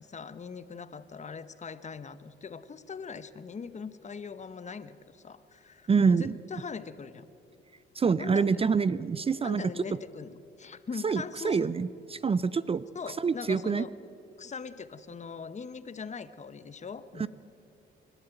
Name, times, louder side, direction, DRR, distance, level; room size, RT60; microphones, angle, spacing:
voice 1, 0.0-7.3 8.2-8.7 9.4-11.7 12.9-13.9 14.4-17.3, left 5 dB, 35° left, 13 dB, 1.0 m, -41 dB
voice 2, 5.9-6.3 7.9-9.6 11.0-12.8 13.2-13.8 17.2-17.3, right 5 dB, 30° right, 17 dB, 0.5 m, -26 dB
28.5 x 12.5 x 9.2 m, 2.7 s
cardioid pair, 90°, 20 cm